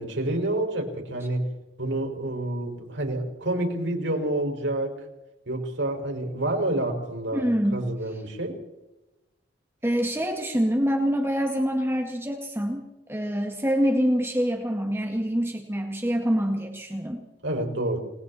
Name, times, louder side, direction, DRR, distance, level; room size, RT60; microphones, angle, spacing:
voice 1, 0.0-1.5 1.8-5.1 5.5-7.5 7.7-8.6 17.4-18.0, right 1 dB, 90° right, 2 dB, 5.9 m, -28 dB
voice 2, 7.3-7.9 9.8-17.2, equal, 15° right, 2 dB, 2.0 m, -25 dB
30.0 x 20.0 x 4.4 m, 0.99 s
head